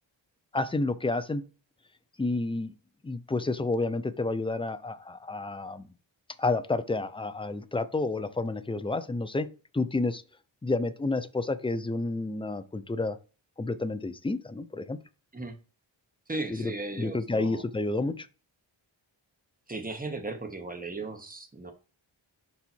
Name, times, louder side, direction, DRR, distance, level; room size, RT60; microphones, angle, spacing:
voice 1, 0.5-1.4 2.2-2.7 3.0-5.9 6.4-9.5 9.7-10.2 10.6-13.2 13.6-15.0 16.5-18.3, left 2 dB, 15° left, 0.4 m, -30 dB
voice 2, 16.3-17.6 19.7-21.7, right 2 dB, 20° right, 1.1 m, -36 dB
5.5 x 4.2 x 4.4 m
wide cardioid pair, 110°, 46 cm